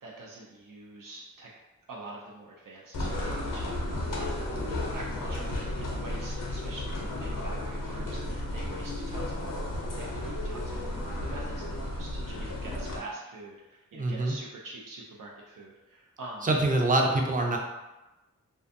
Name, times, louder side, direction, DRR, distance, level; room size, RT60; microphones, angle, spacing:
voice 1, 0.0-1.5 1.9-4.5 4.9-16.5, right 2 dB, 85° right, -3 dB, 0.5 m, -45 dB
sound 1, 2.9-13.0, left 1 dB, 85° left, 0.6 m, -33 dB
voice 2, 13.9-14.4 16.4-17.6, right 2 dB, 25° right, 1 dB, 0.4 m, -25 dB
2.5 x 2.2 x 2.5 m, 1.0 s
wide cardioid pair, 60°, 31 cm